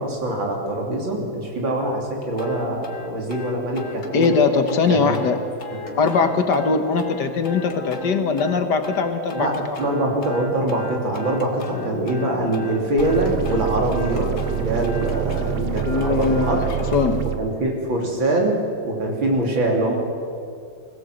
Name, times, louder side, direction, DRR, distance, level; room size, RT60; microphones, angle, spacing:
voice 1, 0.0-4.3 4.9-5.1 9.3-16.6 17.2-19.9, right 1 dB, 80° right, 0 dB, 3.8 m, -24 dB
sound 1, 2.4-17.1, left 3 dB, 45° left, 1.8 m, -35 dB
voice 2, 4.1-5.4 6.0-9.8 15.9-17.3, left 5 dB, 60° left, 7 dB, 1.8 m, -21 dB
sound 2, 13.0-17.4, right 11 dB, 60° right, 1.4 m, -26 dB
21.0 x 16.0 x 7.9 m, 2.4 s
omnidirectional pair, 2.1 m